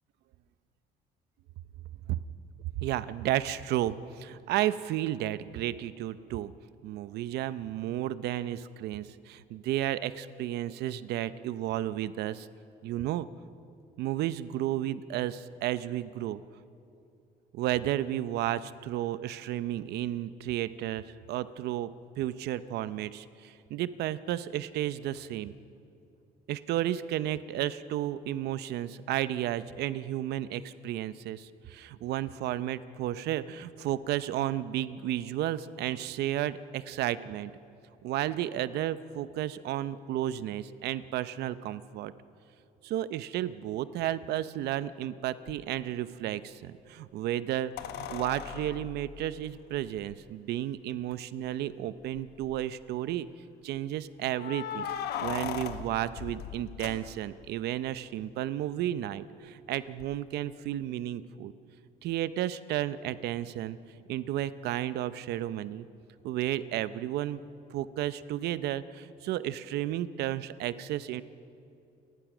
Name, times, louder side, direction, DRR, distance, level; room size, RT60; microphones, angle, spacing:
voice 1, 2.8-6.5 6.8-12.5 12.8-13.3 14.0-16.4 17.5-21.9 22.2-25.5 26.5-37.5 38.0-42.1 42.8-47.7 48.0-53.3 53.6-54.9 55.2-61.5 62.0-63.8 64.1-65.9 66.2-67.4 67.7-71.2, right 13 dB, 75° right, 15 dB, 0.7 m, -32 dB
sound 1, 45.5-45.6 47.8-50.2 51.1-51.2 51.5-51.6 52.2-52.6 54.3-57.5 60.0-60.1, left 8 dB, 70° left, 1.1 m, -38 dB
29.5 x 14.0 x 6.2 m, 2.7 s
cardioid pair, 110°, 17 cm